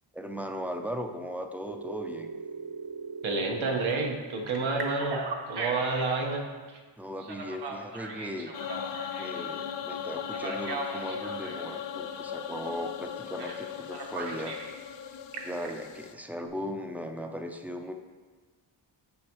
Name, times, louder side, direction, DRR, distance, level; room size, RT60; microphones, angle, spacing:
voice 1, 0.1-2.3 7.0-8.5 9.2-14.6 15.4-17.9, equal, 5° right, 4 dB, 0.4 m, -37 dB
Telephone, 1.7-3.9 4.5-6.2 7.2-9.5 10.3-11.6 13.4-13.6 13.9-14.7 15.1-15.7, right 4 dB, 55° right, 1.0 m, -38 dB
voice 2, 3.2-6.8, right 3 dB, 80° right, 1 dB, 1.2 m, -30 dB
sound 1, 8.5-16.1, left 8 dB, 65° left, 0.6 m, -38 dB
9.7 x 5.3 x 3.0 m, 1.4 s
wide cardioid pair, 115°, 48 cm